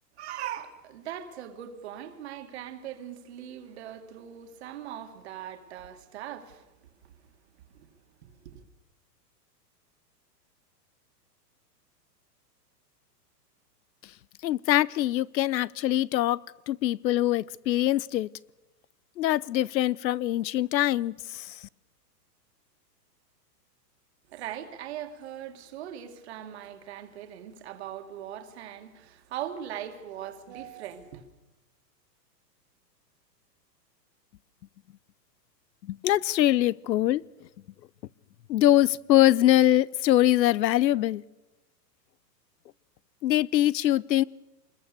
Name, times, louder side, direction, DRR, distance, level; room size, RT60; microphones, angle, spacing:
voice 1, 0.2-6.7 7.0-7.1 7.7-7.9 8.3-8.6 24.3-31.3, right 10 dB, 40° right, 2.1 m, -40 dB
voice 2, 14.4-18.3 19.2-21.6 35.8-37.5 38.5-41.2 43.2-44.2, left 14 dB, 85° left, 0.7 m, -23 dB
25.0 x 21.5 x 6.8 m
supercardioid pair, 175°, 50 cm